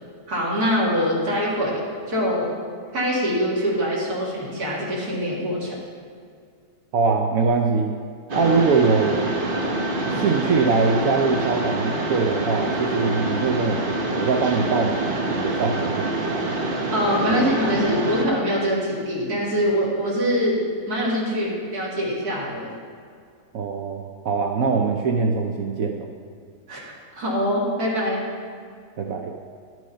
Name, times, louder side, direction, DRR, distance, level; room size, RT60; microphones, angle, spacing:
voice 1, 0.3-2.5 2.9-5.8 16.9-22.7 26.7-28.2, equal, 90° right, -5 dB, 2.7 m, -24 dB
voice 2, 6.9-8.0 8.3-9.3 10.0-16.0 16.3-16.5 23.5-26.1 29.0-29.3, right 4 dB, 70° right, 2 dB, 1.1 m, -23 dB
Mechanisms, 8.3-18.3, right 2 dB, 40° right, 1.0 m, -26 dB
11.5 x 6.2 x 5.6 m, 2.2 s
omnidirectional pair, 1.6 m